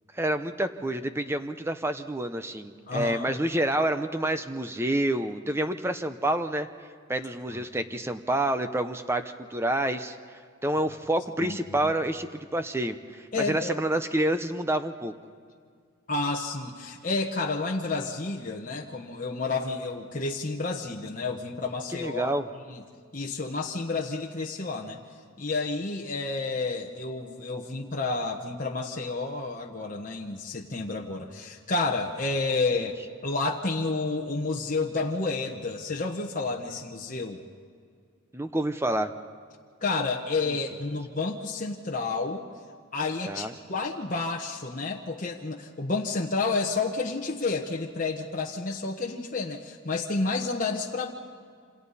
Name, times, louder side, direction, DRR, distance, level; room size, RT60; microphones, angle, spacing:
voice 1, 0.1-6.7 7.1-15.1 21.9-22.5 38.3-39.1 40.5-40.6 43.2-43.5, right 1 dB, 10° right, 9 dB, 0.6 m, -28 dB
voice 2, 2.9-3.3 7.5-7.6 11.4-11.6 11.8-11.9 13.3-13.8 16.1-22.3 22.7-22.8 23.1-25.0 25.4-32.9 33.2-37.4 39.8-42.5 42.9-51.1, left 3 dB, 40° left, -1 dB, 1.1 m, -30 dB
27.5 x 27.0 x 4.2 m, 2.1 s
head